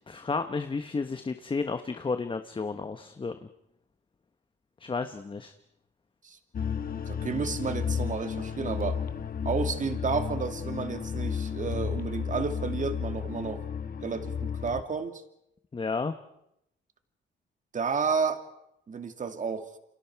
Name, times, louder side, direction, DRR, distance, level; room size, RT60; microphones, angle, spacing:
voice 1, 0.1-3.4 4.8-5.5 15.7-16.1, left 4 dB, 25° left, 9 dB, 1.1 m, -32 dB
sound 1, 6.5-14.8, left 7 dB, 45° left, 1.3 m, -33 dB
voice 2, 6.8-9.0 9.4-13.6 14.0-15.2 17.7-18.4 18.9-19.7, right 5 dB, 40° right, 7 dB, 2.3 m, -31 dB
29.0 x 26.0 x 4.7 m, 0.81 s
cardioid pair, 90°, 20 cm